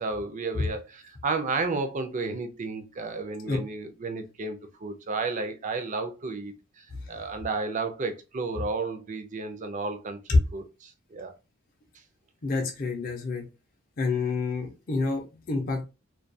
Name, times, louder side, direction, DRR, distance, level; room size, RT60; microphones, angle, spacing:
voice 1, 0.0-11.3, right 3 dB, 35° right, 0.4 m, -32 dB
voice 2, 12.4-13.4 14.0-15.8, left 3 dB, 40° left, 0.5 m, -27 dB
2.3 x 2.2 x 2.6 m
head